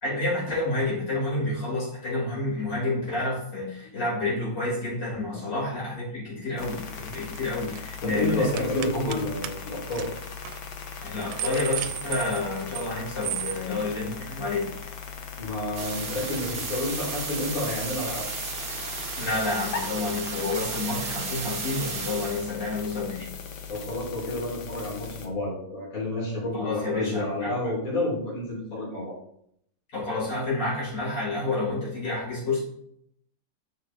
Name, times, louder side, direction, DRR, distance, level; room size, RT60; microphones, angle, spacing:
voice 1, 0.0-9.2 11.0-14.7 19.2-23.3 26.5-27.7 29.9-32.6, left 2 dB, 60° left, -7 dB, 4.5 m, -29 dB
sound 1, 6.6-25.3, left 6 dB, 75° left, 1.9 m, -39 dB
sound 2, 7.1-7.4 7.6-7.9 8.6-9.2 9.4-9.5 9.9-10.1 10.5-10.6 11.0-12.9 13.2-13.6, right 12 dB, 85° right, 1.4 m, -33 dB
voice 2, 8.0-10.1 13.7-13.8 15.4-18.3 23.7-29.2, left 1 dB, 40° left, -7 dB, 3.8 m, -30 dB
sound 3, 15.7-22.5, right 4 dB, 40° right, 1.0 m, -34 dB
10.0 x 6.5 x 2.9 m, 0.70 s
omnidirectional pair, 2.2 m